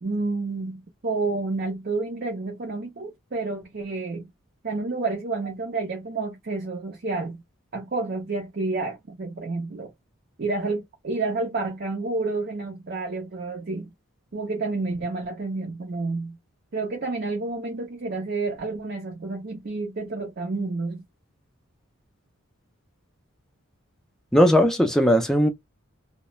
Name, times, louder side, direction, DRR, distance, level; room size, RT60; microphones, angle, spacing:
voice 1, 0.0-4.3 4.6-7.4 7.7-9.9 10.4-13.9 14.3-16.4 16.7-21.1, right 3 dB, 45° right, 0.6 m, -29 dB
voice 2, 24.3-25.5, equal, ahead, 0.4 m, -18 dB
2.3 x 2.0 x 2.9 m
head